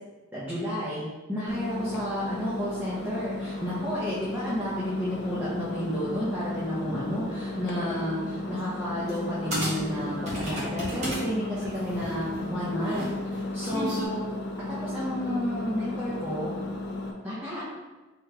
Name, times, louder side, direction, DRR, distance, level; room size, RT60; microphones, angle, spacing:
voice 1, 0.3-14.2 14.8-16.5 17.2-17.6, equal, 10° right, -10 dB, 0.8 m, -31 dB
Engine, 1.5-17.1, left 2 dB, 50° left, 0.5 m, -34 dB
sound 1, 9.1-9.2 9.5-11.2 11.6-14.0, right 1 dB, 35° right, 1.2 m, -33 dB
3.4 x 3.0 x 3.7 m, 1.2 s
head